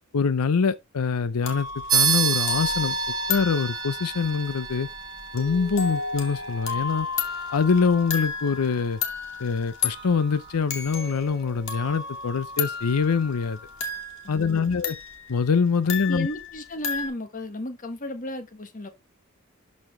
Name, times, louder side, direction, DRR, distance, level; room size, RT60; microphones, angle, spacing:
voice 1, 0.1-1.7 1.9-3.0 3.3-4.9 5.3-7.1 7.5-9.0 9.4-13.6 14.3-15.0 15.3-16.3, left 5 dB, 80° left, 0.6 m, -24 dB
sound 1, 1.4-17.1, left 5 dB, 60° left, 2.4 m, -33 dB
sound 2, 1.9-11.9, right 6 dB, 20° right, 1.1 m, -31 dB
voice 2, 14.2-14.7 16.1-18.9, left 1 dB, 35° left, 1.4 m, -34 dB
12.5 x 4.2 x 3.1 m
head